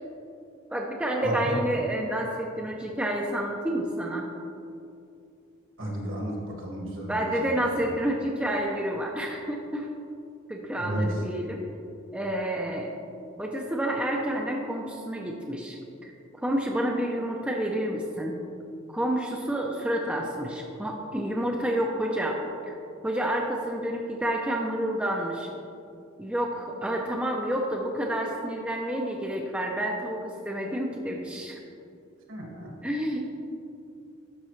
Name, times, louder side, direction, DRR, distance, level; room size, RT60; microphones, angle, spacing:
voice 1, 0.7-4.3 7.1-9.9 10.5-11.6 12.1-12.9 13.4-16.1 16.4-18.4 18.9-22.4 22.7-22.8 23.0-25.5 26.2-31.6 32.8-33.3, right 1 dB, 5° right, -1 dB, 0.5 m, -29 dB
voice 2, 1.2-1.5 5.8-7.7 10.8-11.1 32.3-32.7, right 1 dB, 65° right, -2 dB, 1.8 m, -33 dB
12.0 x 5.1 x 3.2 m, 2.6 s
head